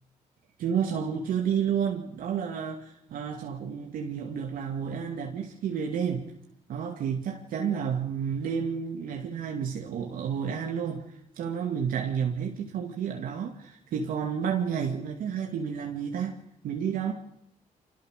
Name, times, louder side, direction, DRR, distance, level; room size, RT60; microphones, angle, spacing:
voice 1, 0.6-6.3 6.7-16.4 16.6-17.1, right 7 dB, 75° right, 2.5 m, -31 dB
29.0 x 25.5 x 6.7 m
cardioid pair, 85°, 14 cm